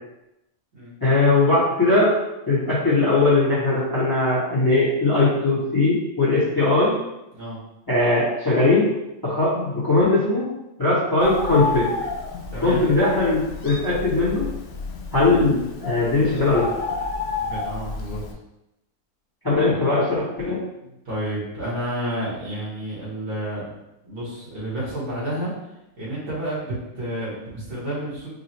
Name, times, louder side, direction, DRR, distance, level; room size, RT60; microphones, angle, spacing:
voice 1, 1.0-2.2 2.5-7.0 7.9-8.9 9.2-10.5 10.8-11.9 12.6-14.5 15.1-16.7 19.4-20.6, left 2 dB, 15° left, -10 dB, 1.1 m, -20 dB
Bird, 11.2-18.3, left 4 dB, 75° left, 0.5 m, -31 dB
voice 2, 12.5-12.8 17.4-18.2 21.1-23.7 24.0-25.5 26.0-28.3, right 1 dB, 65° right, -8 dB, 1.8 m, -30 dB
5.2 x 2.4 x 2.9 m, 0.90 s
omnidirectional pair, 1.5 m